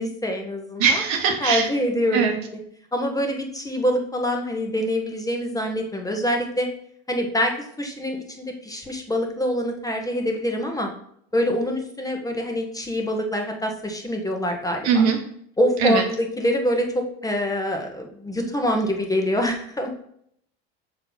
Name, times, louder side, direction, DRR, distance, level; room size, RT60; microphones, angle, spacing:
voice 1, 0.0-1.0 1.4-2.6 2.9-6.7 7.1-7.5 7.8-10.9 11.3-15.0 15.6-19.9, equal, 10° left, 2 dB, 1.0 m, -25 dB
voice 2, 0.8-1.7 2.1-2.4 14.8-15.2 15.8-16.0, right 6 dB, 60° right, 4 dB, 1.2 m, -20 dB
5.6 x 4.4 x 4.0 m, 0.67 s
hypercardioid pair, 85°, 32 cm